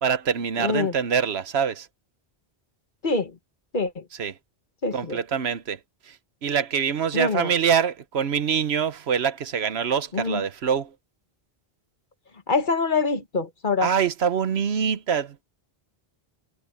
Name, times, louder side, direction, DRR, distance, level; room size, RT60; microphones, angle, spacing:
voice 1, 0.0-1.9 4.2-4.3 4.9-5.8 6.1-6.2 6.4-10.9 13.8-15.4, right 7 dB, 75° right, 1.2 m, -24 dB
voice 2, 0.6-0.9 3.0-3.3 3.7-4.0 4.8-5.2 7.1-7.5 10.1-10.4 12.5-13.9, left 4 dB, 50° left, 1.6 m, -25 dB
omnidirectional pair, 1.1 m